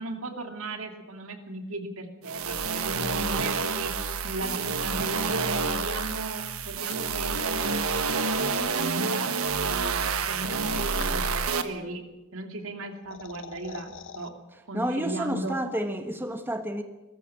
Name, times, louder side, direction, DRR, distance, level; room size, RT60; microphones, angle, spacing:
voice 1, 0.0-3.9 4.2-7.7 8.2-12.0 12.3-14.3 14.7-15.6, right 2 dB, 70° right, 5 dB, 2.7 m, -36 dB
sound 1, 2.2-11.6, right 5 dB, 90° right, 1.5 m, -28 dB
sound 2, 6.9-8.9 10.2-11.4 12.8-14.3, left 5 dB, 65° left, 1.1 m, -43 dB
voice 2, 14.7-16.8, right 1 dB, 10° right, 6 dB, 1.3 m, -30 dB
21.5 x 14.0 x 8.8 m, 1.1 s
head